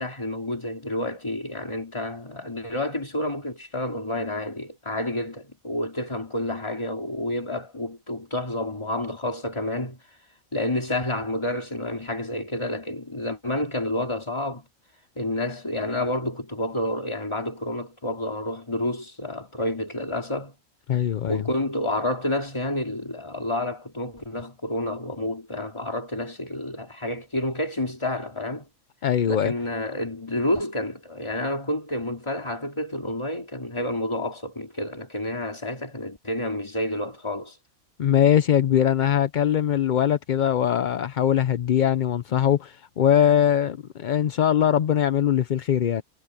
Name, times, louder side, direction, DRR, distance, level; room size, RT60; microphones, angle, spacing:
voice 1, 0.0-10.0 10.5-14.6 15.2-20.5 21.3-28.7 29.3-37.6, left 1 dB, 20° left, 2.7 m, -29 dB
voice 2, 20.9-21.4 29.0-29.5 38.0-46.0, left 10 dB, 50° left, 0.6 m, -21 dB
omnidirectional pair, 1.3 m